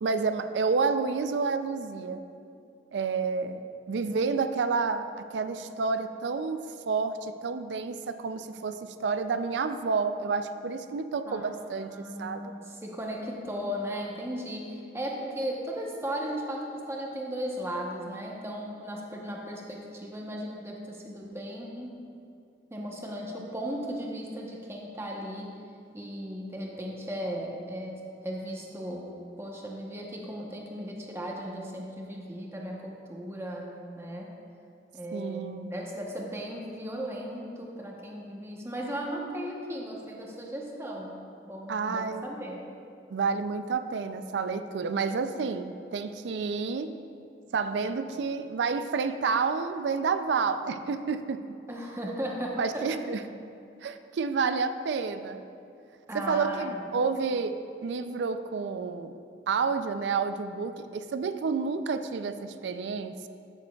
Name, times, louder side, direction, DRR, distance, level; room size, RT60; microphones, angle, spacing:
voice 1, 0.0-2.2 2.9-12.5 35.1-35.7 41.7-42.3 43.1-47.0 47.5-51.4 52.6-53.2 53.8-55.4 56.1-59.2 59.5-63.3, right 5 dB, 75° right, 10 dB, 0.4 m, -30 dB
voice 2, 11.8-22.1 22.7-25.5 25.9-29.1 29.4-34.3 34.9-41.2 41.4-42.6 51.7-52.9 56.1-56.8, equal, 15° right, -1 dB, 0.9 m, -36 dB
13.5 x 6.8 x 2.3 m, 2.5 s
head